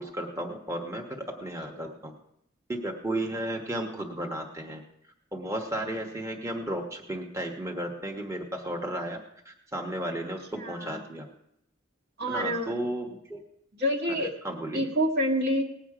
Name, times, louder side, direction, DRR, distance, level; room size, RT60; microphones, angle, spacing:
voice 1, 0.0-2.1 2.7-4.8 5.3-9.2 9.4-11.3 12.3-13.4 14.4-14.9, right 1 dB, 15° right, 0 dB, 1.2 m, -34 dB
voice 2, 10.5-11.0 12.2-12.7 13.7-14.3 14.7-15.6, equal, 55° right, 0 dB, 1.7 m, -28 dB
19.0 x 8.1 x 4.9 m, 0.76 s
head